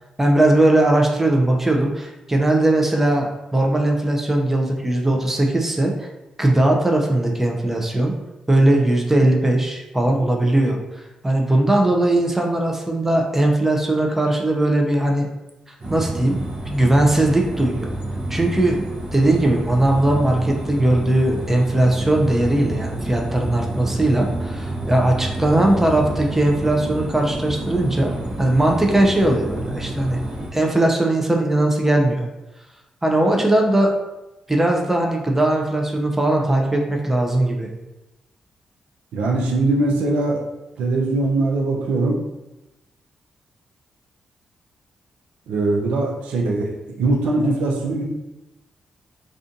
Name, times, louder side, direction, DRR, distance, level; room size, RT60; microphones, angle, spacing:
voice 1, 0.2-6.1 6.4-8.1 8.5-10.8 11.2-15.3 15.7-16.4 16.6-17.9 18.3-18.8 19.1-28.1 28.4-30.2 30.5-32.3 33.0-33.9 34.5-37.7, right 1 dB, 15° right, 1 dB, 0.5 m, -19 dB
sound 1, 15.8-30.5, right 1 dB, 50° right, 0.7 m, -29 dB
voice 2, 39.1-40.4 40.8-42.2 45.5-48.0, right 2 dB, 80° right, -1 dB, 0.4 m, -21 dB
2.5 x 2.4 x 2.5 m, 0.98 s
hypercardioid pair, 45°, 2 cm